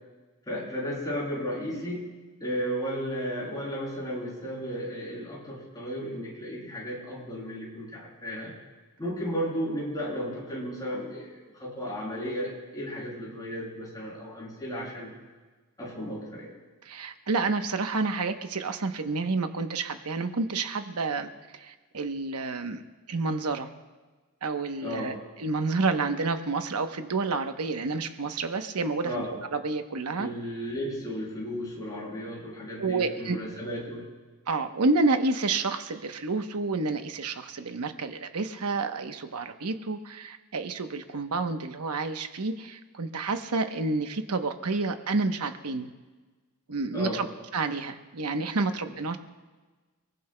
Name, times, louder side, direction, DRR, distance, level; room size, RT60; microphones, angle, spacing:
voice 1, 0.5-2.1 2.4-8.6 9.0-15.1 15.8-16.5 24.8-25.2 29.0-29.3 30.2-34.1 46.9-47.2, equal, 20° left, -6 dB, 6.9 m, -34 dB
voice 2, 16.8-22.8 23.1-23.7 24.4-25.1 25.4-29.2 29.5-30.3 32.8-33.4 34.5-45.9 46.7-47.3 47.5-49.2, right 3 dB, 85° right, 7 dB, 0.9 m, -29 dB
29.0 x 19.0 x 2.2 m, 1.3 s
head